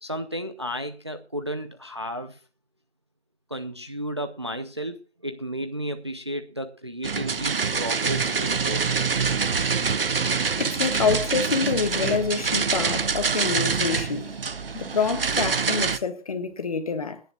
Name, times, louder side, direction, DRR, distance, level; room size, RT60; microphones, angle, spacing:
voice 1, 0.0-2.4 3.5-5.0 5.2-8.9, equal, 25° right, 0.6 m, -33 dB
sound 1, 7.0-16.0, right 5 dB, 50° right, 1.0 m, -25 dB
voice 2, 10.6-14.4 14.7-17.2, left 5 dB, 30° left, 1.4 m, -27 dB
29.5 x 10.5 x 2.3 m
figure-of-eight pair, 165°, 36 cm